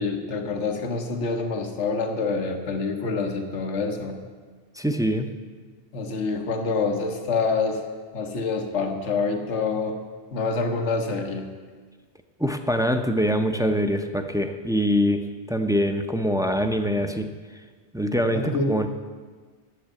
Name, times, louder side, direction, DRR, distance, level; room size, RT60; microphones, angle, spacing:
voice 1, 0.0-4.2 5.9-7.8 8.1-10.0 10.3-11.5 18.3-18.8, left 4 dB, 85° left, 5 dB, 1.4 m, -26 dB
voice 2, 4.8-5.3 12.4-15.2 15.5-17.3 17.9-18.9, equal, 5° right, 6 dB, 0.4 m, -24 dB
10.0 x 7.4 x 8.8 m, 1.5 s
omnidirectional pair, 1.2 m